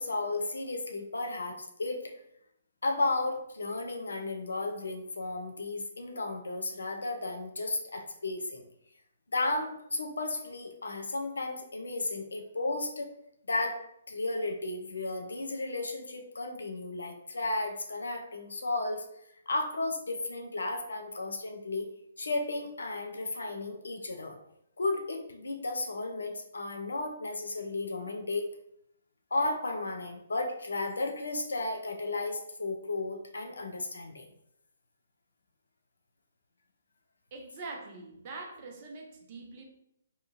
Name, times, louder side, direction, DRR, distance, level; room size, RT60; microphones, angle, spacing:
voice 1, 0.0-2.1 2.8-8.6 9.3-13.1 13.5-13.8 14.1-19.0 19.5-21.9 22.2-24.4 24.8-28.5 29.3-34.3, left 2 dB, 65° left, 3 dB, 0.4 m, -34 dB
voice 2, 37.3-39.6, right 3 dB, 35° right, 2 dB, 0.5 m, -43 dB
2.8 x 2.3 x 2.6 m, 0.76 s
figure-of-eight pair, 130°, 0 cm